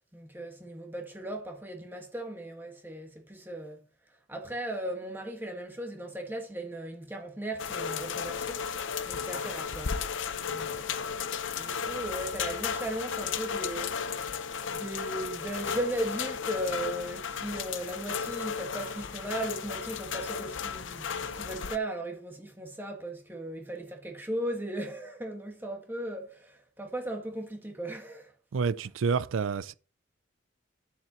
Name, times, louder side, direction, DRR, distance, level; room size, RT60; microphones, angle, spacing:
voice 1, 0.1-3.9 4.3-8.6 9.0-10.0 10.4-14.1 14.7-28.3, right 1 dB, 10° right, 1.7 m, -37 dB
sound 1, 7.6-21.8, left 6 dB, 75° left, 0.7 m, -34 dB
voice 2, 28.5-29.7, right 5 dB, 85° right, 0.4 m, -28 dB
10.5 x 7.6 x 3.1 m
head